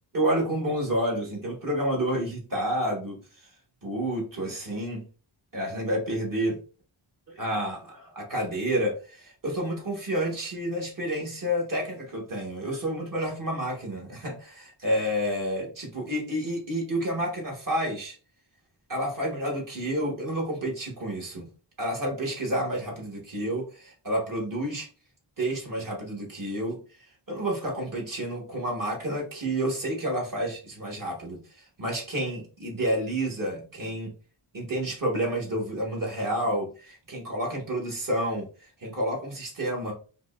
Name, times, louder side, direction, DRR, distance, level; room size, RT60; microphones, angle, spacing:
voice 1, 0.1-3.2 3.8-5.1 5.5-6.6 7.3-18.1 18.9-21.5 21.8-24.9 25.4-26.8 27.3-34.1 34.5-39.9, right 1 dB, 40° right, -2 dB, 1.4 m, -29 dB
5.0 x 2.2 x 2.4 m, 0.35 s
wide cardioid pair, 125°, 49 cm